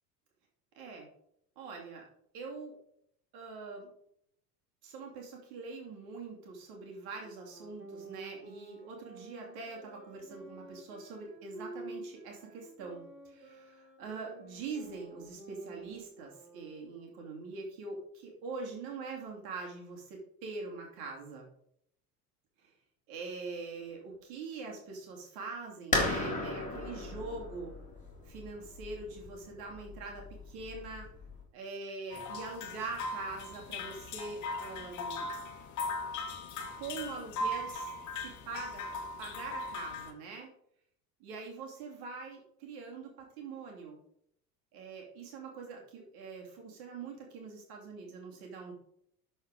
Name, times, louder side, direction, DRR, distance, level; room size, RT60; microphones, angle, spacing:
voice 1, 0.8-1.1 1.6-2.0 2.3-2.8 3.3-3.9 4.8-21.4 22.6-22.7 23.1-27.7 28.2-31.1 31.5-35.3 36.8-37.9 38.2-40.5 41.2-44.0 44.7-48.7, right 4 dB, 50° right, 0 dB, 2.5 m, -43 dB
sound 1, 7.2-17.2, right 2 dB, 85° right, 2.1 m, -50 dB
sound 2, 25.9-31.4, left 2 dB, 15° left, 2.6 m, -36 dB
sound 3, 32.1-40.1, left 2 dB, 35° left, 1.4 m, -39 dB
12.5 x 4.4 x 4.9 m, 0.71 s
figure-of-eight pair, 70°, 48 cm